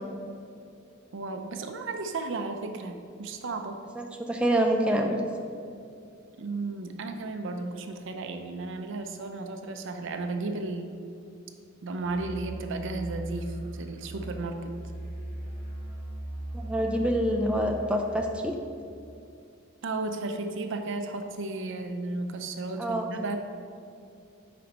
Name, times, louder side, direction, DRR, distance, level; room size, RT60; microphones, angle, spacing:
voice 1, 1.1-3.8 6.4-10.9 11.8-14.7 19.8-23.4, right 3 dB, 65° right, 6 dB, 0.5 m, -34 dB
voice 2, 4.0-5.2 16.5-18.5 22.8-23.1, right 1 dB, 5° right, 1 dB, 0.4 m, -26 dB
Musical instrument, 12.0-18.3, right 1 dB, 35° left, 1.3 m, -39 dB
8.3 x 5.0 x 2.9 m, 2.5 s
head